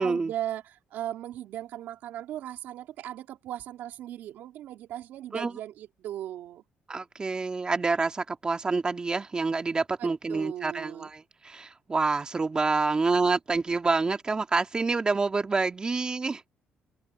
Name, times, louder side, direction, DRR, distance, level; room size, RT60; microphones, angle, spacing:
voice 1, 0.0-6.6 10.0-11.1, right 12 dB, 75° right, 2.9 m, -37 dB
voice 2, 6.9-16.5, right 4 dB, 25° right, 2.0 m, -27 dB
cardioid pair, 90°, 3 cm